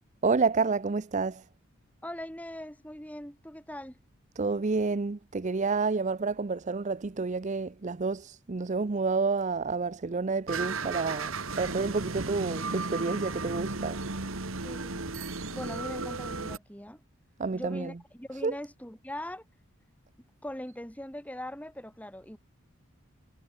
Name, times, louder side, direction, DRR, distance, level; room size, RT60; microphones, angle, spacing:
voice 1, 0.2-1.4 4.4-14.0 17.4-18.0 18.4-18.6, right 4 dB, 35° right, 0.5 m, -29 dB
voice 2, 2.0-4.0 14.6-15.0 15.5-17.0 17.5-19.4 20.4-22.4, left 1 dB, 5° left, 5.5 m, -41 dB
sound 1, 10.5-16.6, right 3 dB, 75° right, 2.3 m, -35 dB
head